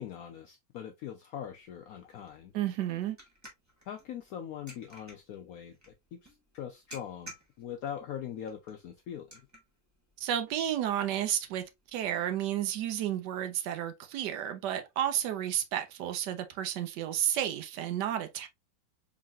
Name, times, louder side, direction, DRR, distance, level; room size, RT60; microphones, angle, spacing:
voice 1, 0.0-2.5 3.9-9.4, left 9 dB, 75° left, 0.8 m, -42 dB
sound 1, 1.4-12.7, right 1 dB, 10° right, 1.0 m, -56 dB
voice 2, 2.5-3.2 10.2-11.6 11.9-18.5, right 11 dB, 75° right, 1.1 m, -32 dB
3.9 x 3.7 x 2.3 m
omnidirectional pair, 2.0 m